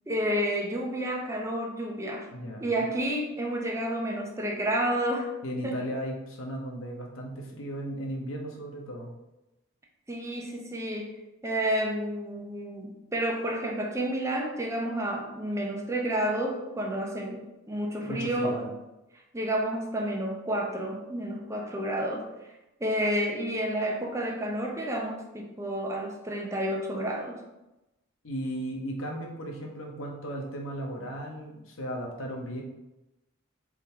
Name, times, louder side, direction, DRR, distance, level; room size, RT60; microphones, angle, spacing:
voice 1, 0.1-2.3 2.6-5.3 5.6-5.7 10.1-18.7 19.3-22.3 22.8-27.4, right 1 dB, 15° right, 0 dB, 0.6 m, -30 dB
voice 2, 2.3-2.9 5.4-9.1 18.0-18.6 28.2-32.6, equal, 85° left, 0 dB, 0.9 m, -36 dB
3.7 x 2.7 x 4.4 m, 0.96 s
head